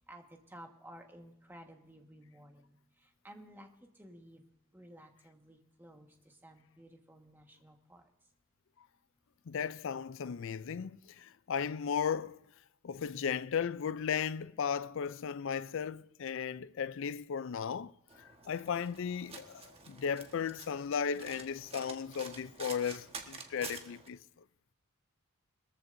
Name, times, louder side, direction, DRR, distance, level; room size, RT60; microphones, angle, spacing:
voice 1, 0.0-3.7 3.9-4.4 4.7-8.0, right 1 dB, 10° right, 1.5 m, -54 dB
voice 2, 9.5-12.4 12.8-17.9 18.2-24.2, left 7 dB, 65° left, 0.4 m, -36 dB
Domestic sounds home sounds, 18.1-24.1, right 4 dB, 30° right, 1.4 m, -49 dB
21.5 x 14.5 x 2.7 m
head